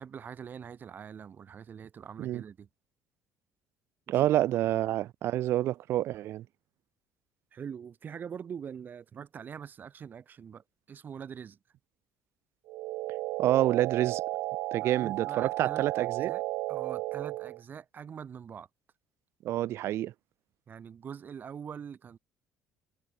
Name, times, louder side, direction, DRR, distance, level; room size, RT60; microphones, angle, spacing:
voice 1, 0.0-2.7 4.1-4.3 4.6-4.8 7.5-11.6 14.8-16.4 16.7-18.7 20.7-22.2, right 7 dB, 40° right, 2.3 m, -43 dB
voice 2, 4.1-6.4 13.4-14.2 14.7-16.3 19.4-20.1, right 13 dB, 60° right, 0.5 m, -28 dB
sound 1, 12.7-17.6, right 18 dB, 75° right, 0.9 m, -34 dB
cardioid pair, 110°, 5 cm